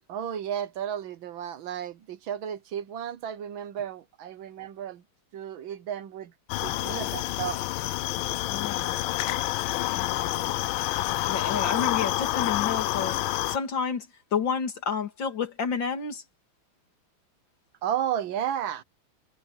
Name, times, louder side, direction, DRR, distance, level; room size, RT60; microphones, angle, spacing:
voice 1, 0.1-5.0 5.3-6.3 6.6-7.6 17.8-18.8, right 9 dB, 70° right, 1.7 m, -33 dB
sound 1, 6.5-13.6, left 15 dB, 80° left, 1.4 m, -28 dB
voice 2, 8.5-9.0 9.9-10.4 11.3-16.2, left 6 dB, 60° left, 2.8 m, -30 dB
omnidirectional pair, 2.3 m